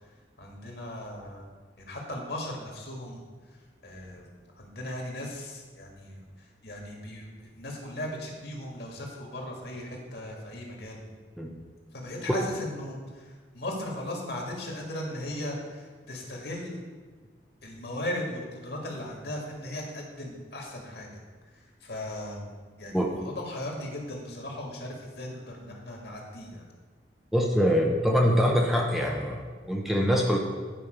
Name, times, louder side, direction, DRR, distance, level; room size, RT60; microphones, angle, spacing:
voice 1, 0.4-1.5 1.8-3.2 3.8-4.2 4.6-6.2 6.6-7.3 7.5-11.1 12.0-16.8 17.6-21.1 21.5-26.6, left 1 dB, 70° left, -1 dB, 2.0 m, -37 dB
voice 2, 27.3-30.4, equal, ahead, -1 dB, 0.7 m, -24 dB
10.0 x 5.5 x 5.2 m, 1.4 s
head